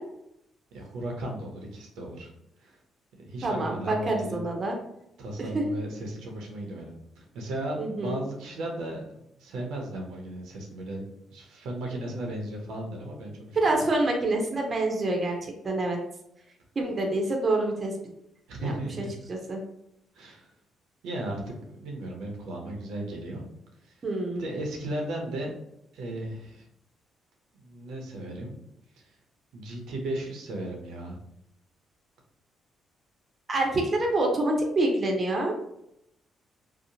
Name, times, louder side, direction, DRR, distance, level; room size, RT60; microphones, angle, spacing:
voice 1, 0.7-2.3 2.6-2.8 3.2-4.5 5.2-11.0 11.3-13.7 18.5-19.1 20.1-20.5 21.0-23.4 23.9-24.0 24.4-25.5 25.9-26.7 27.5-28.6 29.0-29.1 29.5-31.2, right 1 dB, 85° right, 1 dB, 0.6 m, -36 dB
voice 2, 3.4-4.8 5.5-5.6 7.8-8.2 13.5-15.3 15.6-16.0 16.8-17.9 18.6-18.7 19.3-19.6 24.0-24.4 33.5-35.5, right 2 dB, 35° right, 1 dB, 0.6 m, -26 dB
2.8 x 2.0 x 2.7 m, 0.79 s
cardioid pair, 90°, 0 cm